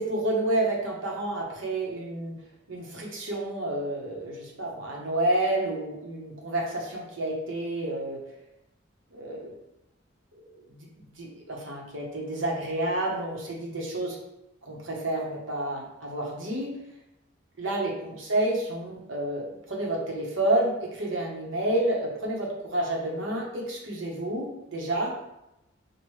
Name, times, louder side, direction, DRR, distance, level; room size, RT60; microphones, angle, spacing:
voice 1, 0.0-2.3 2.7-8.2 9.1-9.5 10.3-10.9 11.2-14.2 14.6-16.7 17.6-25.1, right 1 dB, 70° right, -2 dB, 1.1 m, -29 dB
6.3 x 2.4 x 3.1 m, 0.88 s
head